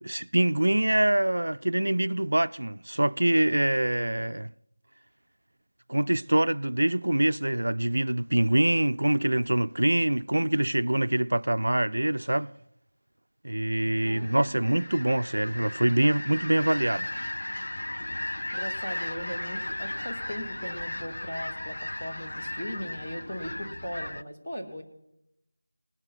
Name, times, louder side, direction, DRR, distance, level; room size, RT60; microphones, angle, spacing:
voice 1, 0.0-4.5 5.9-12.5 13.4-17.1, right 1 dB, 80° right, 0.3 m, -25 dB
sound 1, 13.8-24.2, left 1 dB, 70° left, 0.4 m, -36 dB
voice 2, 14.1-14.8 18.5-24.8, equal, 10° left, 1.7 m, -38 dB
19.5 x 6.9 x 5.5 m
figure-of-eight pair, 175°, 0 cm